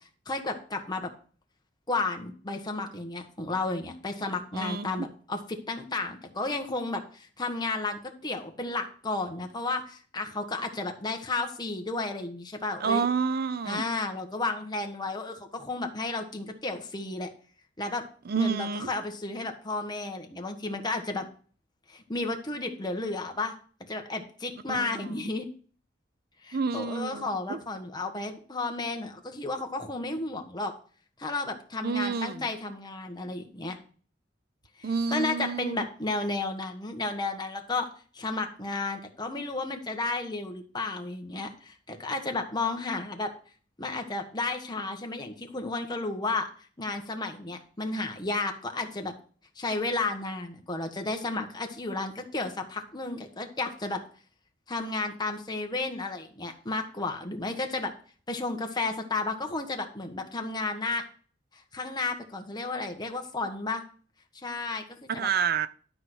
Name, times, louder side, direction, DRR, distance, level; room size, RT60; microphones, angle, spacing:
voice 1, 0.3-1.1 1.9-13.1 13.7-17.3 17.8-18.1 18.4-21.3 21.9-23.5 23.8-25.5 26.4-30.7 31.2-33.8 34.8-37.9 38.1-43.3 43.8-46.5 46.8-49.1 49.5-54.0 54.7-57.9 58.3-61.0 61.5-63.8 64.4-65.3, left 3 dB, 25° left, 1.4 m, -32 dB
voice 2, 4.5-5.1 12.8-13.9 18.3-18.9 24.7-25.1 26.5-27.6 31.8-32.5 34.8-35.8 65.2-65.7, right 5 dB, 55° right, 0.5 m, -29 dB
12.0 x 4.8 x 6.2 m
head